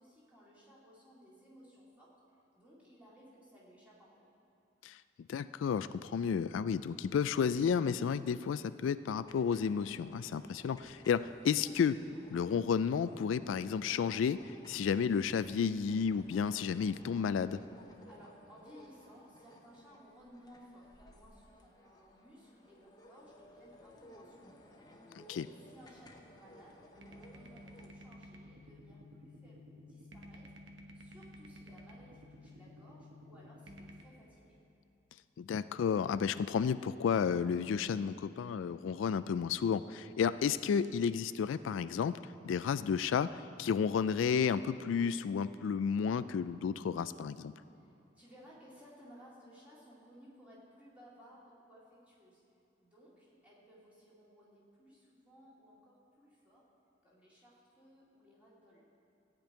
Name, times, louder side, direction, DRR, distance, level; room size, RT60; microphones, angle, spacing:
voice 1, 0.0-2.1 2.5-4.1 18.1-24.4 25.3-30.4 30.9-34.6 47.7-52.4 52.8-56.6 57.0-58.8, equal, 5° right, -8 dB, 2.5 m, -59 dB
voice 2, 5.3-12.0 12.3-14.4 14.7-17.6 25.2-25.5 35.4-42.2 42.4-47.5, left 6 dB, 85° left, 14 dB, 0.3 m, -32 dB
sound 1, 9.2-27.9, left 1 dB, 20° left, 0.9 m, -58 dB
sound 2, 27.0-34.0, left 1 dB, 70° right, 1.0 m, -53 dB
14.5 x 5.3 x 8.9 m, 2.6 s
head